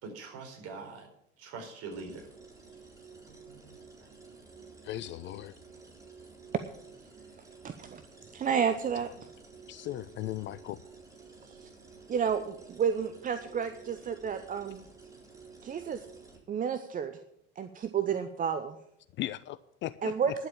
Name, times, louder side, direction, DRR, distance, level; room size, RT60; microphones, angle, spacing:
voice 1, 0.0-1.1 1.4-2.3 3.2-4.1, right 4 dB, 45° right, 2 dB, 4.3 m, -44 dB
sound 1, 1.9-16.4, right 4 dB, 10° right, 3.8 m, -52 dB
voice 2, 4.8-5.5 9.7-10.8 19.2-20.1, left 14 dB, 35° left, 15 dB, 0.5 m, -37 dB
voice 3, 7.6-8.0 8.3-9.1 11.5-11.7 12.1-14.8 15.6-16.0 16.5-17.1 17.6-18.8 20.0-20.3, right 7 dB, 25° right, 9 dB, 0.8 m, -31 dB
11.0 x 7.6 x 8.7 m, 0.74 s
figure-of-eight pair, 75°, 33 cm